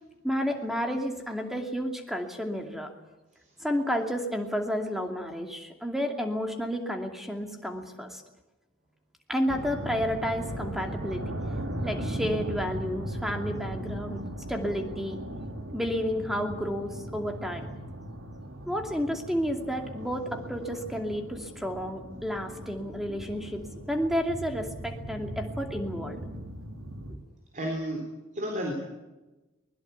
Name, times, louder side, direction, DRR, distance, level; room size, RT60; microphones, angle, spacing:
voice 1, 0.2-2.9 3.6-8.2 9.3-11.3 11.8-14.2 14.5-15.2 15.7-17.7 18.7-26.2, equal, ahead, 3 dB, 2.5 m, -31 dB
sound 1, 9.5-27.2, right 1 dB, 85° right, 3.9 m, -38 dB
voice 2, 27.5-28.1 28.3-28.7, equal, 35° right, 2 dB, 3.8 m, -31 dB
23.5 x 21.0 x 8.3 m, 1.1 s
head